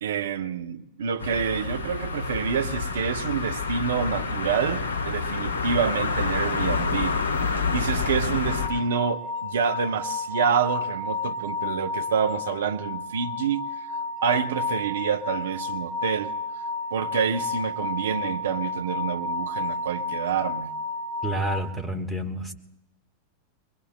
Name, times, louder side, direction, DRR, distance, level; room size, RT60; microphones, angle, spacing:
voice 1, 0.0-13.7 14.2-16.3 16.9-20.7, right 7 dB, 60° right, 0.6 m, -27 dB
sound 1, 1.2-8.7, left 4 dB, 65° left, 1.4 m, -28 dB
sound 2, 8.5-21.6, left 3 dB, 25° left, 4.9 m, -31 dB
voice 2, 21.2-22.5, right 1 dB, ahead, 1.4 m, -29 dB
23.0 x 21.5 x 2.2 m
figure-of-eight pair, 90°, 0 cm